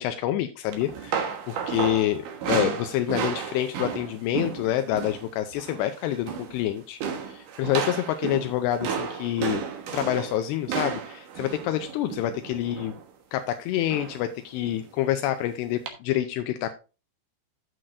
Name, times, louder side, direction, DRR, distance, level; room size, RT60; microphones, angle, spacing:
voice 1, 0.0-7.0 7.3-9.6 9.9-13.0 13.3-16.7, left 12 dB, 85° left, 8 dB, 2.7 m, -27 dB
sound 1, 0.7-5.3 5.5-5.9 6.1-6.6 7.0-13.0 13.9-14.3 14.6-14.8 15.9-16.0, right 7 dB, 65° right, 2.4 m, -32 dB
14.0 x 6.0 x 2.6 m, 0.31 s
omnidirectional pair, 4.9 m